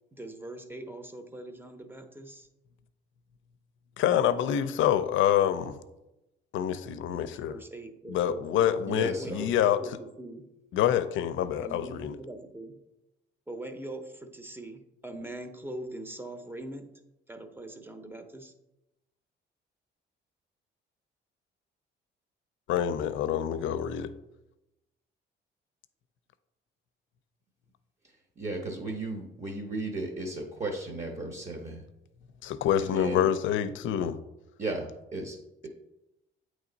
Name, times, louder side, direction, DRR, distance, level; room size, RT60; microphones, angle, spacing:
voice 1, 0.1-2.5 7.2-10.5 11.6-12.8 13.5-16.9 17.3-18.5, right 1 dB, 10° right, 7 dB, 0.7 m, -42 dB
voice 2, 4.0-5.8 6.5-7.6 8.1-9.8 10.7-12.2 22.7-24.1 32.4-34.2, left 10 dB, 75° left, 13 dB, 0.4 m, -26 dB
voice 3, 8.9-9.5 28.4-31.8 32.8-33.3 34.6-35.4, right 2 dB, 35° right, 2 dB, 0.9 m, -35 dB
8.2 x 3.2 x 3.9 m, 0.95 s
cardioid pair, 90°, 20 cm